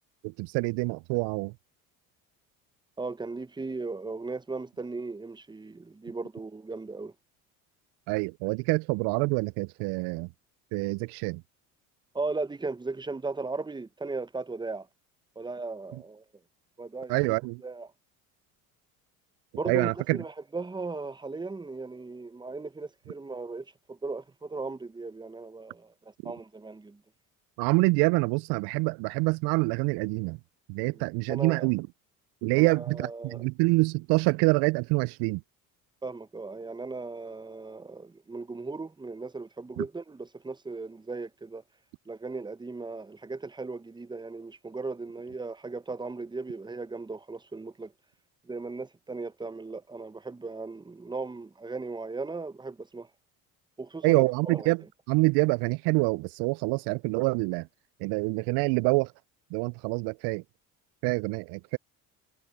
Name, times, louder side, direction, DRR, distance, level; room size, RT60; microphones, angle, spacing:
voice 1, 0.2-1.5 8.1-10.3 10.7-11.4 15.9-16.0 17.1-17.6 19.7-20.2 26.2-26.3 27.6-30.4 30.7-31.9 32.4-35.4 39.8-39.9 54.0-57.7 58.0-59.1 59.5-60.4 61.0-61.8, right 27 dB, 65° right, 0.6 m, -26 dB
voice 2, 3.0-7.1 12.1-14.9 15.4-16.2 16.8-17.3 17.6-17.9 19.6-25.9 26.2-27.0 31.3-31.7 32.6-33.4 36.0-41.6 42.1-47.9 48.5-53.1 53.8-54.7, right 3 dB, 10° right, 0.7 m, -37 dB
hypercardioid pair, 70°, 42 cm